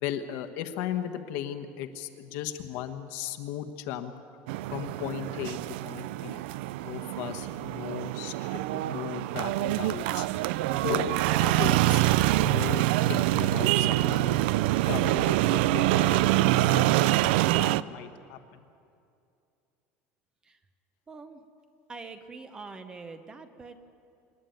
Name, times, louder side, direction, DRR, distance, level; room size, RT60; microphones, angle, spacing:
voice 1, 0.0-4.1 4.7-6.4 6.8-10.3 10.7-12.0 12.4-14.5 14.8-17.3 17.6-18.6, left 10 dB, 55° left, 8 dB, 1.2 m, -36 dB
sound 1, 4.5-17.8, right 16 dB, 90° right, 0.4 m, -25 dB
voice 2, 21.1-21.5 21.9-23.8, right 4 dB, 15° right, 8 dB, 0.8 m, -44 dB
26.5 x 11.0 x 9.2 m, 2.5 s
cardioid pair, 175°, 5 cm